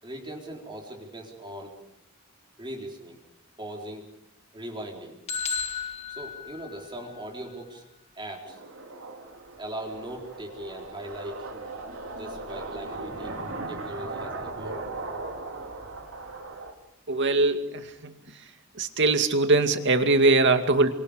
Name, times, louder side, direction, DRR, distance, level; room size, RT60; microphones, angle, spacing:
voice 1, 0.0-1.8 2.6-3.2 3.6-4.1 4.5-5.2 6.1-7.8 8.2-8.6 9.6-11.7 12.1-14.9, right 1 dB, 20° right, 0 dB, 4.1 m, -39 dB
sound 1, 5.3-7.2, left 6 dB, 30° left, 1.5 m, -33 dB
sound 2, 8.4-16.7, right 2 dB, 75° right, 3.9 m, -38 dB
voice 2, 17.1-18.2 18.7-20.9, right 3 dB, 60° right, 7 dB, 2.3 m, -22 dB
29.5 x 25.0 x 5.2 m, 0.78 s
head